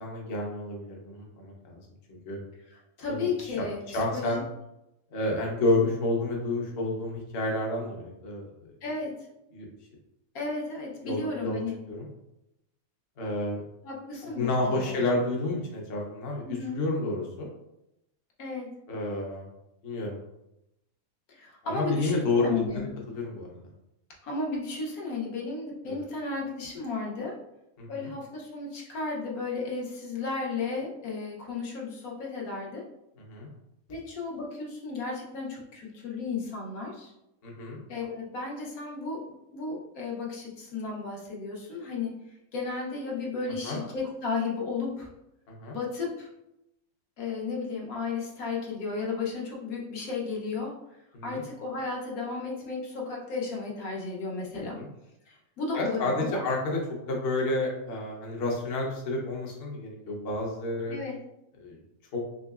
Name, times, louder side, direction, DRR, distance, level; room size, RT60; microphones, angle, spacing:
voice 1, 0.0-1.8 2.1-2.4 3.1-3.3 3.9-4.4 5.1-8.7 9.5-9.7 11.0-11.6 11.9-12.1 13.2-13.6 14.4-17.5 18.9-19.5 19.8-20.2 21.6-23.6 25.9-26.0 27.8-27.9 33.3-33.5 37.4-37.8 43.6-43.8 45.5-45.8 51.1-51.4 54.8-54.9 55.7-61.0 61.6-61.8 62.1-62.2, left 2 dB, 50° left, -1 dB, 0.9 m, -30 dB
voice 2, 2.7-4.4 8.8-9.3 10.3-11.8 13.8-14.9 16.4-16.8 18.4-18.8 21.3-22.9 24.2-27.3 27.9-32.8 33.9-37.1 37.9-39.3 39.5-45.1 45.7-46.3 47.2-50.8 51.2-54.8 55.3-56.4 60.9-61.2, left 4 dB, 80° left, -2 dB, 1.3 m, -34 dB
3.8 x 3.1 x 2.3 m, 0.86 s
omnidirectional pair, 1.5 m